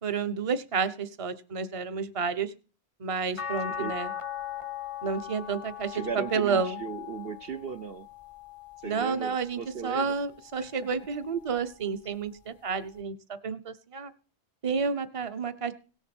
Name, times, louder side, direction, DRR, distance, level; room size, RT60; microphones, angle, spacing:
voice 1, 0.0-2.5 3.0-4.1 5.0-6.8 8.8-14.1 14.6-15.7, right 5 dB, 30° right, 11 dB, 0.9 m, -30 dB
sound 1, 3.4-9.7 10.2-11.6 13.0-13.1, left 9 dB, 35° left, 0.6 m, -40 dB
voice 2, 5.9-8.1 8.8-10.1 10.6-10.7, right 7 dB, 60° right, 8 dB, 0.9 m, -37 dB
17.5 x 7.2 x 6.0 m, 0.37 s
omnidirectional pair, 1.2 m